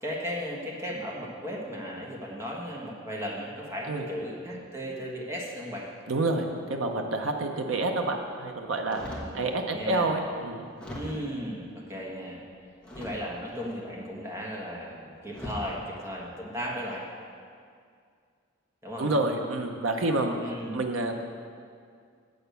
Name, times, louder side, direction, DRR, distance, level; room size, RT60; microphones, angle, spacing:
voice 1, 0.0-5.9 8.9-10.1 10.9-12.4 12.9-17.1 18.8-19.2 20.4-20.8, equal, 15° right, -3 dB, 1.4 m, -36 dB
voice 2, 6.1-10.7 19.0-20.4 20.7-21.1, right 2 dB, 75° right, 3 dB, 0.7 m, -28 dB
sound 1, 8.9-9.4 10.1-10.2 10.8-11.4 12.8-13.5 14.7-14.8 15.3-15.7 16.4-16.7, equal, 5° left, 1.2 m, -40 dB
7.8 x 6.5 x 6.8 m, 2.2 s
head